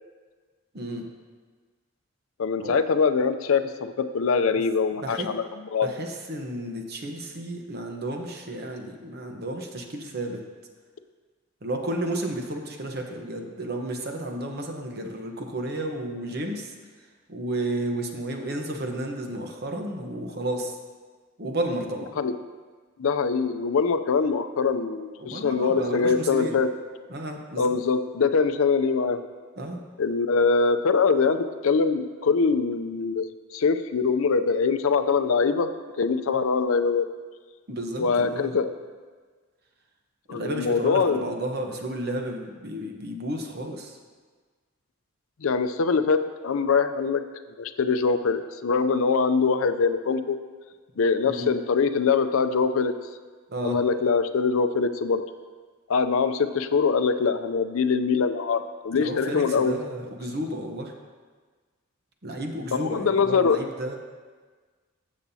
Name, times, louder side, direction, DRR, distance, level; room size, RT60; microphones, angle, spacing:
voice 1, 0.7-1.0 2.6-2.8 5.0-5.3 5.8-10.4 11.6-16.7 17.3-20.8 21.4-22.1 25.2-26.6 27.1-27.7 29.6-29.8 37.7-38.6 40.3-44.0 51.2-51.5 53.5-53.8 58.9-60.9 62.2-64.0, right 1 dB, 50° right, 3 dB, 0.9 m, -32 dB
voice 2, 2.4-5.4 5.7-5.9 22.2-22.4 23.0-26.7 27.6-29.3 30.0-35.7 36.0-37.1 38.0-38.7 40.3-41.2 45.4-47.2 47.6-50.4 51.0-52.9 53.6-55.2 55.9-59.7 62.7-63.6, left 5 dB, 75° left, 10 dB, 0.5 m, -23 dB
14.0 x 7.3 x 2.8 m, 1.5 s
head